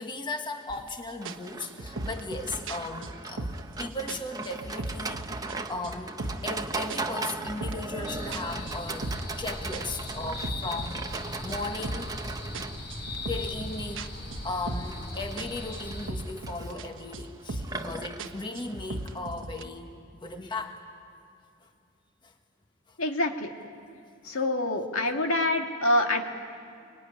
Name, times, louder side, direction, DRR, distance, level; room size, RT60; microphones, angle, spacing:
voice 1, 0.0-5.2 5.7-11.0 11.4-12.2 13.3-14.1 14.4-19.9 20.2-20.8 22.2-22.3 22.9-23.0 24.2-24.4, left 3 dB, 20° left, 4 dB, 1.5 m, -37 dB
sound 1, 0.7-0.9 1.3-3.8 4.1-5.6 5.8-6.6 6.9-9.4 9.7-12.2 12.5-15.1 15.4-16.9 17.1-17.9 18.2-19.6, right 2 dB, 60° right, 1.1 m, -38 dB
Livestock farm animals working animals, 1.2-19.2, right 3 dB, 15° right, 0.9 m, -39 dB
sound 2, 8.1-16.1, left 2 dB, 50° left, 5.3 m, -39 dB
voice 2, 23.0-23.5 24.2-26.2, left 1 dB, 70° left, 4 dB, 2.0 m, -26 dB
24.5 x 23.0 x 10.0 m, 2.4 s
head